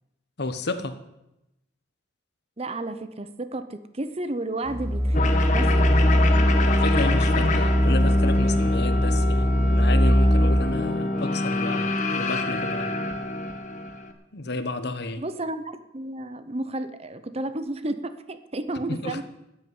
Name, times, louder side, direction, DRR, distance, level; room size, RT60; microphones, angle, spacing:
voice 1, 0.4-1.0 6.6-13.0 14.3-15.2 18.9-19.2, left 2 dB, 55° left, 10 dB, 1.2 m, -31 dB
voice 2, 2.6-6.0 15.2-19.2, right 2 dB, 30° right, 11 dB, 0.8 m, -32 dB
sound 1, 4.7-10.6, equal, 15° right, 1.3 m, -21 dB
sound 2, 5.1-14.1, left 2 dB, 40° left, 1.6 m, -26 dB
13.5 x 8.5 x 9.6 m, 0.90 s
head